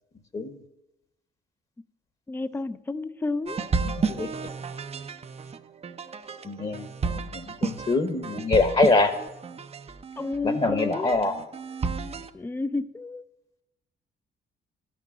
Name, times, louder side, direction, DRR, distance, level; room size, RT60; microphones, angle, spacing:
voice 1, 2.3-3.7 10.2-11.2 12.3-13.2, left 3 dB, 10° left, 14 dB, 0.5 m, -31 dB
sound 1, 3.5-12.3, right 5 dB, 30° right, 0.6 m, -32 dB
voice 2, 3.8-4.3 6.4-9.1 10.4-11.4, left 3 dB, 30° left, 10 dB, 1.0 m, -24 dB
11.5 x 6.1 x 9.2 m, 0.94 s
cardioid pair, 90°, 20 cm